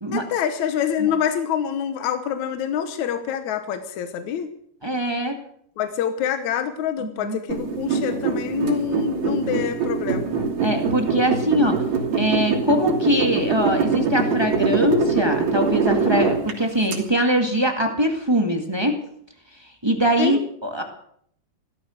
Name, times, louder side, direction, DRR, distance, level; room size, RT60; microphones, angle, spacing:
voice 1, 0.1-4.5 5.8-10.3 20.2-20.4, left 9 dB, 65° left, 8 dB, 2.2 m, -26 dB
voice 2, 4.8-5.3 7.2-7.4 10.6-11.8 12.1-18.9 19.8-20.8, equal, 15° right, 3 dB, 0.8 m, -22 dB
sound 1, 7.5-17.0, right 5 dB, 85° right, 4.8 m, -23 dB
16.0 x 14.0 x 6.5 m, 0.65 s
omnidirectional pair, 4.1 m